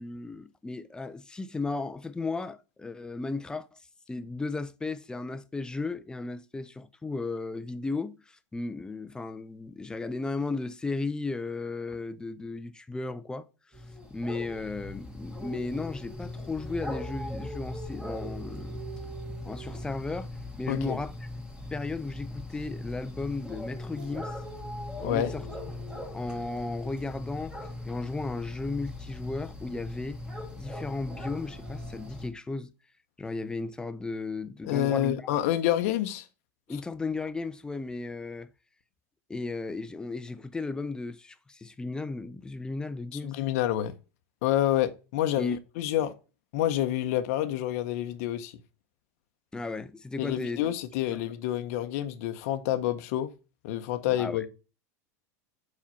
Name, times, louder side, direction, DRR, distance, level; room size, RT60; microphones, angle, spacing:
voice 1, 0.0-3.8 4.1-13.5 14.1-18.8 19.4-20.3 20.6-21.1 21.7-24.4 25.0-25.4 26.1-27.6 27.9-30.2 30.5-32.7 33.2-35.4 36.7-38.5 39.3-43.4 45.4-45.6 49.5-50.6 51.1-51.2 54.2-54.4, left 3 dB, 10° left, 0.5 m, -35 dB
sound 1, 13.7-32.3, left 1 dB, 10° right, 1.9 m, -39 dB
voice 2, 20.7-21.0 25.0-25.3 34.6-36.3 43.2-43.9 44.4-46.1 46.5-48.6 50.2-53.3 53.6-54.5, left 12 dB, 70° left, 0.7 m, -28 dB
4.9 x 4.3 x 5.6 m
supercardioid pair, 115°, 8 cm